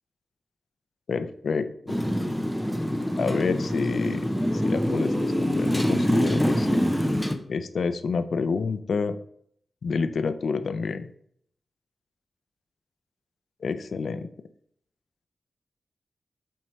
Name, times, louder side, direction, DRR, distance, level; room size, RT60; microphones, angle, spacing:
voice 1, 1.1-2.0 3.2-4.3 4.6-6.8 7.5-9.2 9.8-11.1 13.6-14.3, left 5 dB, 60° left, 11 dB, 0.4 m, -28 dB
Motorcycle, 1.9-7.4, equal, ahead, 0.5 m, -25 dB
7.4 x 4.6 x 3.1 m, 0.66 s
wide cardioid pair, 175°, 0 cm